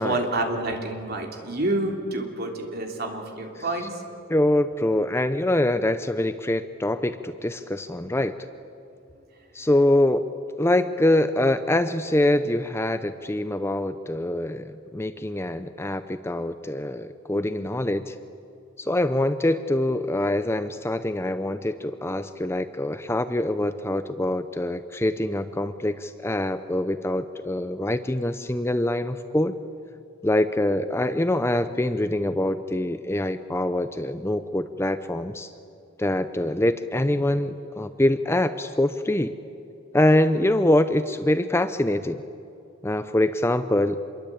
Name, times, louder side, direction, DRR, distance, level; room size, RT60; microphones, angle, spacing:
voice 1, 0.0-3.9, right 2 dB, 50° right, 2 dB, 3.4 m, -28 dB
voice 2, 4.3-8.3 9.5-10.3 10.6-18.1 18.8-29.5 30.2-35.5 36.0-39.3 39.9-42.2 42.8-44.0, left 1 dB, 10° left, 11 dB, 0.6 m, -24 dB
27.0 x 22.5 x 8.7 m, 2.6 s
head